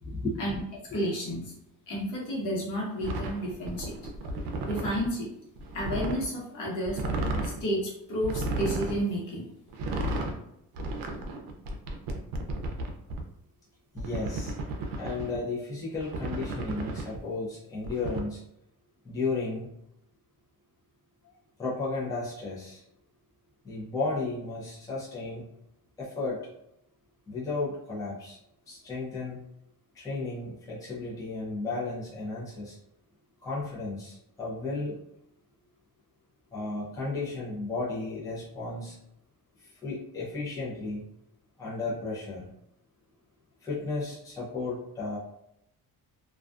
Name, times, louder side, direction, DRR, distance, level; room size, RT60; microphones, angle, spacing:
voice 1, 0.0-0.3 0.9-1.0 13.9-14.5 15.0-18.4 19.0-19.7 21.2-21.3 21.6-22.8 23.6-25.4 26.0-26.4 27.3-28.4 28.7-29.4 29.9-32.8 33.4-35.0 36.5-39.0 39.8-41.0 41.6-42.5 43.6-45.2, left 3 dB, 10° left, -7 dB, 0.5 m, -34 dB
voice 2, 0.9-1.5 1.9-3.9 4.6-5.3 5.7-7.0 7.4-9.4, equal, 60° left, -3 dB, 1.0 m, -31 dB
sound 1, 3.0-5.1 5.6-6.3 6.8-7.6 8.2-9.0 9.7-10.4 10.8-13.2 14.0-15.4 15.9-17.2 17.8-18.2, right 2 dB, 80° right, 0.5 m, -33 dB
2.4 x 2.3 x 2.4 m, 0.79 s
cardioid pair, 155°, 35 cm